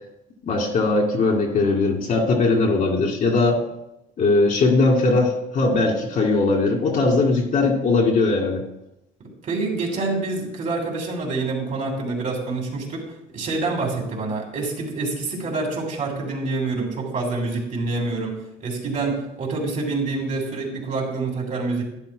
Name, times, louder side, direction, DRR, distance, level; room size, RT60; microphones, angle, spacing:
voice 1, 0.4-3.6 4.2-8.6, left 3 dB, 55° left, 0 dB, 2.4 m, -20 dB
voice 2, 9.2-13.0 13.3-21.8, right 3 dB, 50° right, 0 dB, 2.9 m, -27 dB
11.5 x 11.0 x 2.3 m, 0.87 s
cardioid pair, 110°, 17 cm